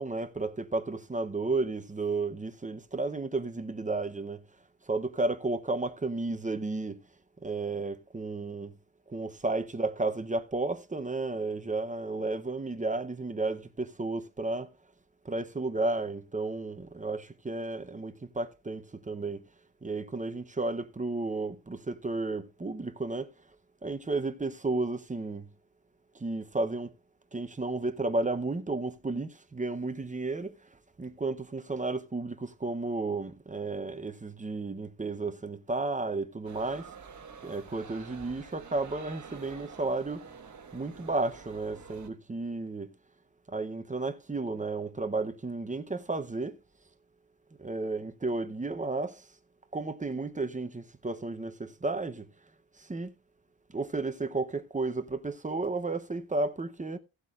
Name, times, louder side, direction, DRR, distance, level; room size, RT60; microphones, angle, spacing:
voice 1, 0.0-4.5 4.8-7.0 7.4-8.8 9.1-14.7 15.2-19.4 19.8-23.5 23.8-25.5 26.1-26.9 27.3-36.9 37.4-40.3 40.7-42.9 43.5-46.6 47.6-49.4 49.7-52.2 52.7-53.1 53.7-57.0, right 3 dB, 15° right, 0.6 m, -33 dB
sound 1, 36.4-42.1, right 6 dB, 35° right, 1.4 m, -48 dB
16.5 x 8.1 x 2.3 m
wide cardioid pair, 170°, 50 cm